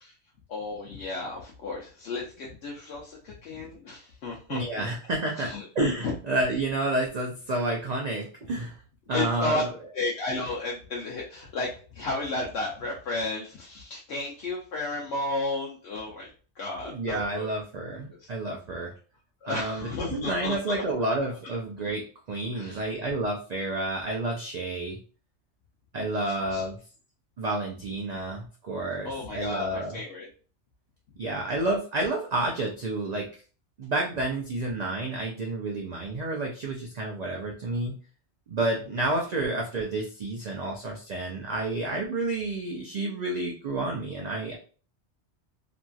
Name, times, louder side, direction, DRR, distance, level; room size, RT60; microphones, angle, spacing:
voice 1, 0.5-4.9 5.3-5.7 6.0-6.1 9.1-9.6 9.9-16.3 16.6-17.5 18.1-18.3 19.4-20.8 22.5-22.9 26.5-26.6 29.0-30.3, left 2 dB, 70° left, -3 dB, 0.9 m, -33 dB
voice 2, 4.5-8.7 9.1-9.7 16.8-18.9 19.5-25.0 25.9-26.8 27.4-30.0 31.2-33.3 33.8-38.0 38.5-44.6, right 2 dB, 55° right, 0 dB, 0.5 m, -30 dB
2.9 x 2.5 x 2.3 m, 0.39 s
omnidirectional pair, 1.2 m